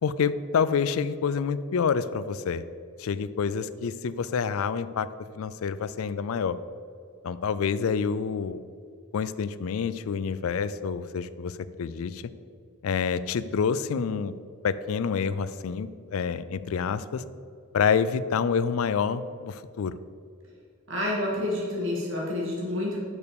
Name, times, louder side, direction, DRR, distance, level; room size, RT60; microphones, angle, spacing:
voice 1, 0.0-2.6 3.0-5.1 5.3-6.6 7.2-8.6 9.1-12.2 12.8-14.3 14.6-17.2 17.7-19.9, left 6 dB, 70° left, 15 dB, 0.4 m, -27 dB
voice 2, 20.9-23.0, left 1 dB, 60° right, -4 dB, 2.2 m, -29 dB
6.2 x 5.5 x 6.8 m, 2.3 s
head